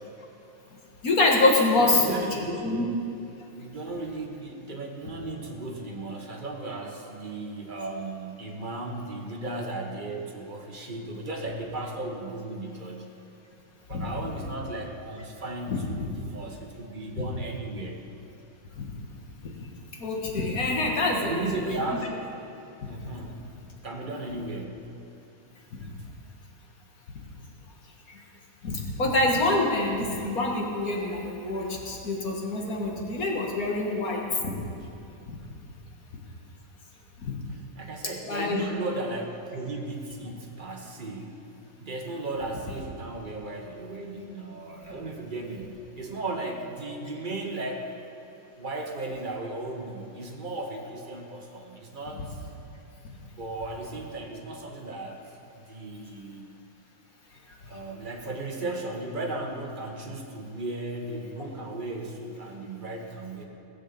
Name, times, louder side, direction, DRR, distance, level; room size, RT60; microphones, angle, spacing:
voice 1, 1.0-2.9 13.9-14.1 15.7-16.1 18.8-18.9 20.0-21.5 22.8-22.9 28.6-34.5 37.2-37.4 38.3-38.7, left 2 dB, 45° left, -1 dB, 1.9 m, -26 dB
voice 2, 1.8-2.9 3.5-13.1 13.9-18.0 21.2-22.1 22.9-23.5 23.8-24.9 37.8-41.5 41.8-48.0 48.5-52.3 53.4-55.2 55.6-56.5 57.7-63.4, right 2 dB, 30° right, 1 dB, 1.2 m, -35 dB
17.0 x 7.4 x 6.9 m, 2.8 s
omnidirectional pair, 2.3 m